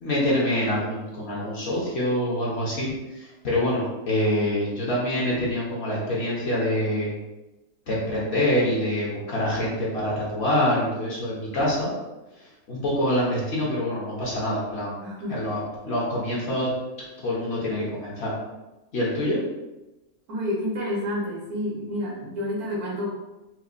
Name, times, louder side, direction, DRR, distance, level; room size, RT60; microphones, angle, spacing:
voice 1, 0.0-7.1 7.9-11.9 12.7-14.9 15.3-16.7 17.2-18.3 18.9-19.4, left 1 dB, 50° left, -5 dB, 1.0 m, -25 dB
voice 2, 15.0-15.4 20.3-23.1, left 1 dB, 80° right, -4 dB, 1.5 m, -29 dB
4.3 x 2.2 x 2.5 m, 1.0 s
omnidirectional pair, 1.6 m